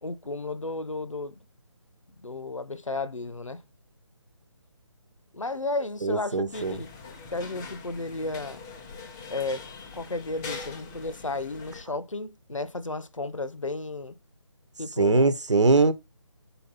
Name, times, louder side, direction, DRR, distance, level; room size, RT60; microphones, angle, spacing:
voice 1, 0.0-1.3 2.1-3.6 5.3-6.9 7.3-8.6 9.3-9.6 9.9-14.2 14.8-15.3, left 2 dB, 85° left, 1.0 m, -33 dB
voice 2, 6.0-6.8 15.0-15.9, right 3 dB, 70° right, 1.1 m, -21 dB
sound 1, 6.5-11.8, left 4 dB, 5° left, 0.4 m, -42 dB
6.2 x 4.4 x 5.3 m
figure-of-eight pair, 150°, 16 cm